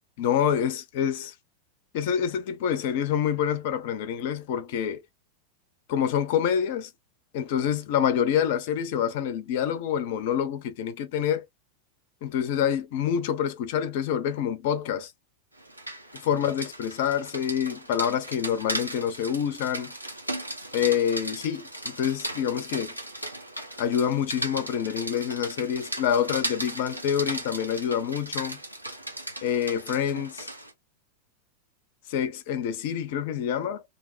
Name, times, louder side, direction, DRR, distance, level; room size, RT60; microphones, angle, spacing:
voice 1, 0.2-1.3 1.9-5.0 5.9-6.9 7.3-11.4 12.2-15.1 16.1-19.9 20.7-22.9 23.8-28.6 29.4-30.5 32.1-33.8, left 9 dB, 50° left, 0.5 m, -27 dB
Rain, 15.6-30.7, right 1 dB, 90° right, 0.7 m, -37 dB
2.8 x 2.0 x 2.5 m
figure-of-eight pair, 90°, 0 cm